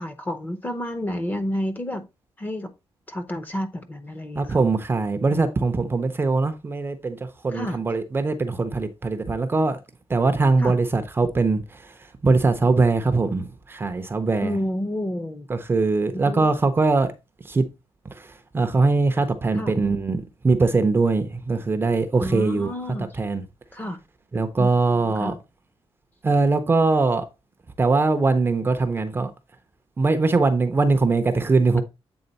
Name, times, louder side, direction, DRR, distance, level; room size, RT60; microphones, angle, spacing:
voice 1, 0.0-2.1 2.4-2.7 3.1-4.6 5.3-5.5 7.5-7.8 10.6-10.8 14.4-15.5 16.1-16.5 19.5-19.7 22.2-23.1 23.7-24.0 24.6-24.8 25.2-25.4, left 1 dB, 15° left, 0.8 m, -30 dB
voice 2, 4.3-9.8 10.1-14.6 15.5-17.1 17.4-17.6 18.1-22.7 23.0-23.4 24.3-25.3 26.2-27.3 27.8-29.3 30.0-31.8, right 3 dB, 20° right, 0.6 m, -22 dB
7.9 x 3.8 x 3.9 m
wide cardioid pair, 175°, 10 cm